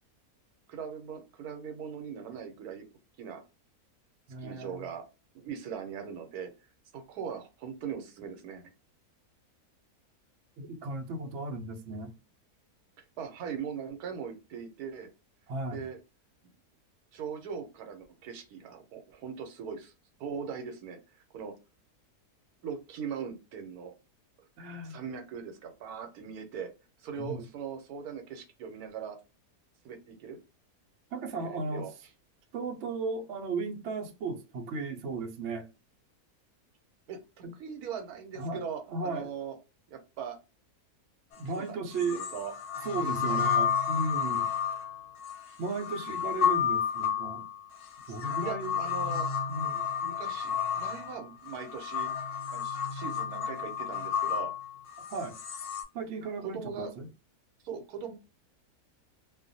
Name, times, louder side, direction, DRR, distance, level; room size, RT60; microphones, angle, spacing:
voice 1, 0.7-2.9 3.2-3.4 4.4-5.0 5.3-6.5 6.9-8.6 13.2-15.1 15.7-16.0 16.4-16.5 17.1-19.9 20.2-21.0 21.3-21.5 22.6-24.0 24.8-26.7 27.0-29.2 29.8-30.4 31.4-31.9 37.1-39.6 39.9-40.4 41.4-42.5 43.3-43.5 44.1-44.4 45.5-45.6 48.4-49.3 50.0-52.1 52.5-54.5 56.4-56.9 57.6-58.1, right 7 dB, 80° right, 1.1 m, -40 dB
voice 2, 4.3-4.9 10.6-12.1 15.5-15.8 24.6-25.0 27.2-27.5 31.1-31.9 32.5-35.7 37.4-37.5 38.3-39.3 41.4-42.2 42.8-44.4 45.6-47.5 48.1-49.9 55.1-55.4 55.9-57.1, right 3 dB, 65° right, 0.8 m, -35 dB
sound 1, 41.3-41.4 42.0-55.8, left 8 dB, 60° left, 0.9 m, -31 dB
2.4 x 2.2 x 2.6 m
omnidirectional pair, 1.6 m